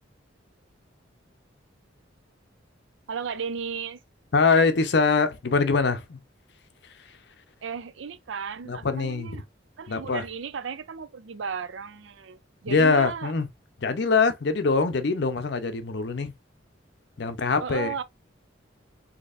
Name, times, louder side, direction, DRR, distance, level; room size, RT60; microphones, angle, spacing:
voice 1, 3.1-4.0 7.6-9.4 9.8-13.3 17.6-18.0, right 6 dB, 75° right, 0.5 m, -34 dB
voice 2, 4.3-6.2 8.7-9.3 9.9-10.2 12.7-13.5 13.8-16.3 17.2-17.9, left 4 dB, 60° left, 0.6 m, -23 dB
4.2 x 2.8 x 2.4 m
head